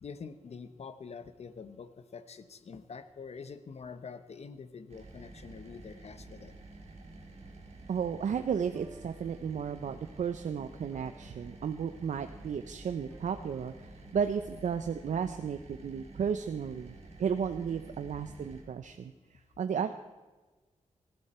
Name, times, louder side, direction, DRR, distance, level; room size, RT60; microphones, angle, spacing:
voice 1, 0.0-6.5, left 5 dB, 60° left, 11 dB, 1.2 m, -46 dB
sound 1, 4.9-18.6, right 2 dB, 60° right, 4.8 m, -50 dB
voice 2, 7.9-19.9, right 7 dB, 80° right, 8 dB, 0.7 m, -34 dB
sound 2, 8.7-14.9, right 1 dB, 10° right, 3.0 m, -60 dB
19.5 x 15.0 x 4.4 m, 1.2 s
wide cardioid pair, 115°, 12 cm